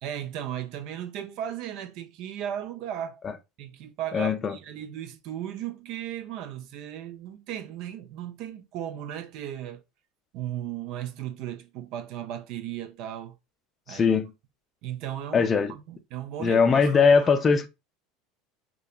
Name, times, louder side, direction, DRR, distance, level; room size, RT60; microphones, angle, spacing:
voice 1, 0.0-3.2 3.6-9.8 10.3-13.4 13.9-14.1 14.8-17.3, right 11 dB, 60° right, 0.3 m, -36 dB
voice 2, 4.1-4.5 13.9-14.3 15.3-15.7 16.4-17.7, left 5 dB, 25° left, 0.4 m, -20 dB
2.7 x 2.2 x 2.3 m
supercardioid pair, 115°, 0 cm